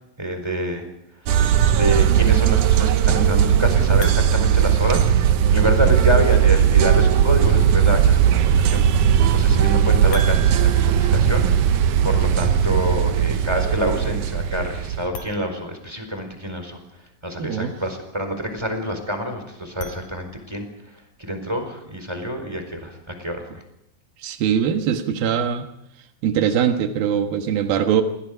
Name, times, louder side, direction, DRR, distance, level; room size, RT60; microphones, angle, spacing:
voice 1, 0.2-0.9 1.7-8.9 9.3-11.5 12.0-16.8 17.2-20.7 21.2-23.6, equal, 5° right, 6 dB, 4.2 m, -27 dB
sound 1, 1.3-15.1, right 9 dB, 70° right, 2.2 m, -17 dB
sound 2, 4.0-5.7 10.1-12.2 15.0-16.6 19.6-20.8, right 1 dB, 65° left, 3.9 m, -39 dB
voice 2, 17.4-17.7 24.2-25.7 26.2-28.0, right 8 dB, 85° right, 6 dB, 3.3 m, -21 dB
28.5 x 21.0 x 5.1 m, 0.82 s
omnidirectional pair, 4.1 m